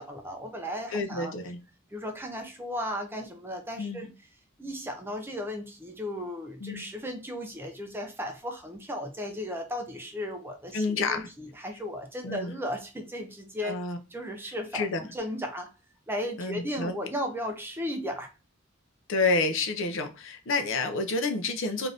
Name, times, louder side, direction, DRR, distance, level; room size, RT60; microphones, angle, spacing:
voice 1, 0.0-1.3 1.9-4.1 4.6-13.8 14.1-15.7 16.1-18.3, equal, 10° right, 0.4 m, -35 dB
voice 2, 0.9-1.6 3.8-4.1 6.6-6.8 10.7-11.3 12.2-12.5 13.6-14.0 14.7-15.0 16.4-16.9 19.1-21.9, left 3 dB, 65° left, 0.5 m, -29 dB
2.6 x 2.5 x 3.3 m
head